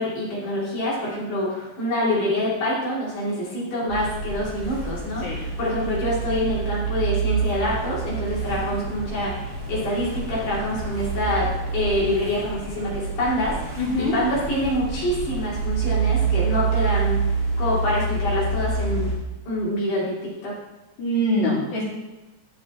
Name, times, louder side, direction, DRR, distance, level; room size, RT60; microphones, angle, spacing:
voice 1, 0.0-17.2 17.6-19.1 19.5-20.5, left 1 dB, 85° left, -6 dB, 4.5 m, -26 dB
voice 2, 3.2-3.7 5.2-5.4 8.6-8.7 13.8-14.2 21.0-21.8, left 1 dB, 65° left, -6 dB, 3.9 m, -25 dB
sound 1, 3.9-19.2, right 5 dB, 35° right, 3.4 m, -27 dB
14.5 x 5.6 x 3.6 m, 1.1 s
omnidirectional pair, 3.6 m